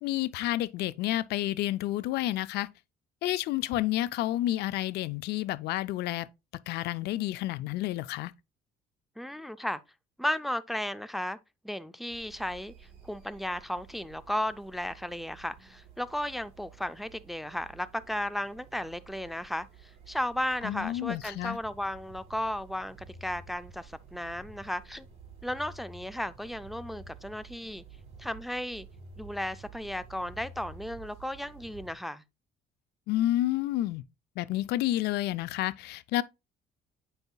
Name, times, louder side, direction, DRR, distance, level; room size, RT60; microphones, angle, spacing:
voice 1, 0.0-2.7 3.2-6.3 6.7-8.3 20.6-21.6 33.1-34.0 34.4-36.2, left 15 dB, 75° left, 0.4 m, -30 dB
voice 2, 9.2-9.8 10.2-11.4 11.6-12.7 13.0-25.1 25.4-27.8 28.2-28.9 29.2-32.2, left 1 dB, ahead, 0.4 m, -34 dB
sound 1, 12.1-32.0, right 5 dB, 40° right, 3.4 m, -51 dB
8.9 x 5.5 x 2.3 m
cardioid pair, 110°, 17 cm